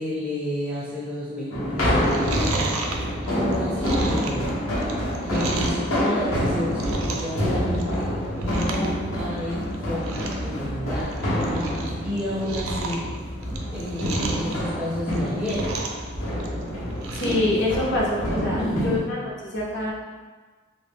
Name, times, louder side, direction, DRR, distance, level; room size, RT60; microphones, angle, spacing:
voice 1, 0.0-3.0 3.4-4.9 5.3-11.2 11.6-11.7 12.0-13.1 13.7-15.9 18.2-18.3 18.6-18.9, left 1 dB, 5° right, -7 dB, 0.4 m, -31 dB
sound 1, 1.5-19.0, equal, 80° left, 0.8 m, -27 dB
Chewing mastication, 2.0-5.9 6.3-7.4 7.7-8.0 8.4-8.9 9.2-9.3 9.7-9.8 10.0-10.4 10.9-11.9 12.2-14.5 15.0-16.1 16.4-17.4 17.8-17.9, right 3 dB, 85° right, 0.3 m, -32 dB
voice 2, 17.1-19.9, left 2 dB, 55° left, -4 dB, 0.6 m, -26 dB
2.1 x 2.0 x 3.3 m, 1.4 s
head